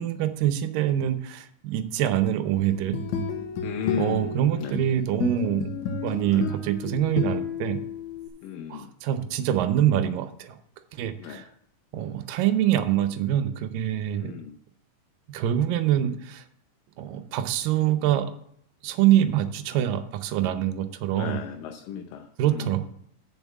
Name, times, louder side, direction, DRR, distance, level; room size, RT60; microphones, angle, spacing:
voice 1, 0.0-3.0 4.0-5.7 6.0-7.8 8.7-10.6 11.0-11.5 11.9-14.3 15.3-16.4 17.0-18.3 18.8-21.5 22.4-22.8, right 11 dB, 85° right, 10 dB, 2.4 m, -25 dB
sound 1, 2.7-8.3, left 5 dB, 70° left, 2.2 m, -31 dB
voice 2, 3.6-4.8 6.2-6.5 8.4-8.9 11.2-11.4 14.2-14.6 21.1-22.7, left 8 dB, 85° left, 5 dB, 2.4 m, -35 dB
7.2 x 5.9 x 7.2 m, 0.68 s
omnidirectional pair, 3.9 m